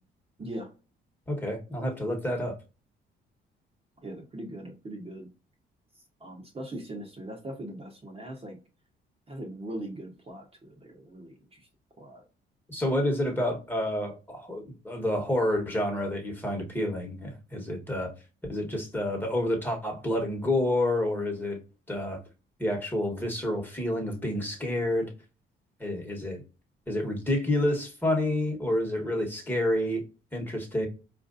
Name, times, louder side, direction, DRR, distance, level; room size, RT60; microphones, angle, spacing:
voice 1, 0.4-0.7 4.0-5.3 6.2-8.6 9.3-11.7 12.0-12.2, right 1 dB, 30° right, 1.0 m, -40 dB
voice 2, 1.3-2.5 12.7-18.1 18.5-21.6 21.9-22.2 22.6-25.1 25.8-26.4 26.9-30.0 30.3-30.9, left 1 dB, 10° left, 1.3 m, -29 dB
4.4 x 2.5 x 2.6 m
cardioid pair, 90°, 20 cm